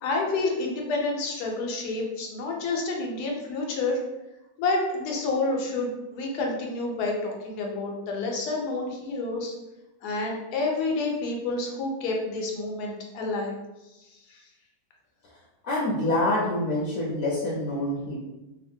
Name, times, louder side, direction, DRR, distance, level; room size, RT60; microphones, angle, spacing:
voice 1, 0.0-4.0 4.6-9.5 10.0-13.5 14.3-14.4, left 3 dB, 85° left, 0 dB, 1.2 m, -29 dB
voice 2, 15.6-18.2, left 1 dB, 70° left, -4 dB, 1.0 m, -26 dB
3.2 x 2.1 x 2.6 m, 1.0 s
omnidirectional pair, 1.6 m